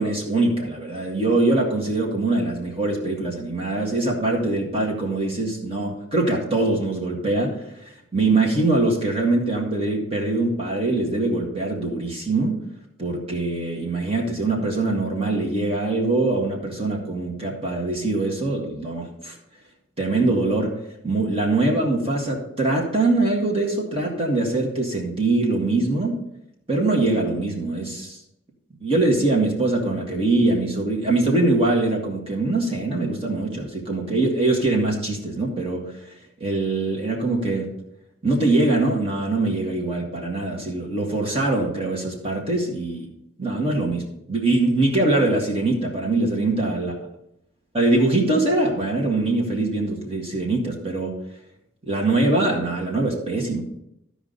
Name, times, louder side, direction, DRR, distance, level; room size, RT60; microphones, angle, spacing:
voice 1, 0.0-7.6 8.1-12.6 13.0-19.4 20.0-20.8 21.0-26.2 26.7-28.2 28.8-35.9 36.4-37.7 38.2-43.1 43.4-47.0 47.7-51.2 51.9-53.6, right 2 dB, 30° right, -1 dB, 1.7 m, -23 dB
14.0 x 5.1 x 4.0 m, 0.78 s
head